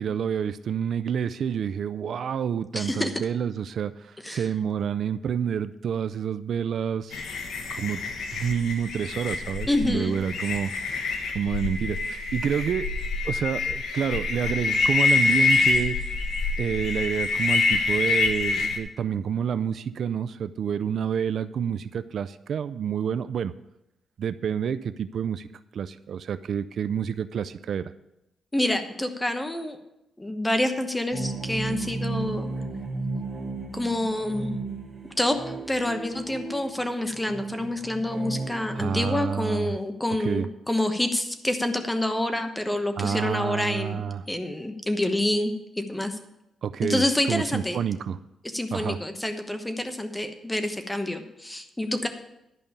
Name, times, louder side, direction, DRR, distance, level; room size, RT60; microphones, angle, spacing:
voice 1, 0.0-7.2 7.7-8.0 8.3-10.7 11.3-12.9 13.2-16.0 16.6-23.5 24.2-25.5 25.7-27.9 38.7-39.8 40.2-40.5 43.0-44.2 46.6-48.2 48.7-49.0, right 8 dB, 60° right, 12 dB, 0.4 m, -28 dB
voice 2, 2.7-3.1 4.2-4.4 9.7-10.2 28.5-29.8 30.2-32.5 33.7-34.5 35.2-35.4 35.7-44.0 44.3-46.2 46.9-47.8 48.4-52.1, left 1 dB, 10° left, 7 dB, 1.1 m, -27 dB
sound 1, 7.1-18.8, left 4 dB, 75° left, 1.3 m, -26 dB
sound 2, 31.1-39.1, right 3 dB, 30° right, 3.5 m, -34 dB
11.0 x 5.3 x 8.6 m, 0.88 s
cardioid pair, 120°, 0 cm